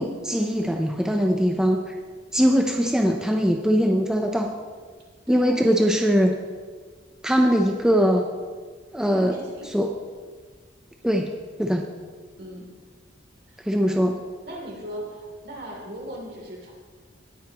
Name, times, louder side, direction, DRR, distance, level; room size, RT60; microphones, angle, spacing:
voice 1, 0.0-2.0 2.3-4.5 5.3-6.4 7.2-8.3 8.9-9.4 9.6-10.0 11.0-11.3 11.6-11.8 13.7-14.2, equal, 5° right, 2 dB, 0.6 m, -21 dB
voice 2, 5.3-5.6 9.0-9.7 12.4-12.7 13.8-13.9 14.4-16.7, right 1 dB, 60° right, -1 dB, 3.0 m, -38 dB
18.5 x 9.8 x 3.0 m, 1.5 s
head